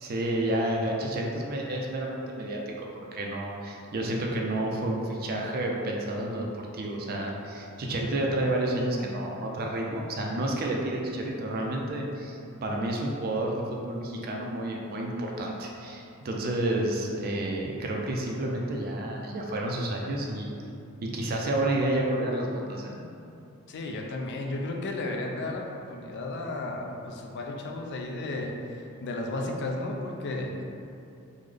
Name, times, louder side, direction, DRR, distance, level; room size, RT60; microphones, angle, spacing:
voice 1, 0.0-20.5 21.0-23.0, right 1 dB, 45° right, -1 dB, 0.4 m, -30 dB
voice 2, 23.7-30.6, left 2 dB, 55° left, 1 dB, 0.3 m, -34 dB
3.6 x 2.1 x 3.2 m, 2.6 s
head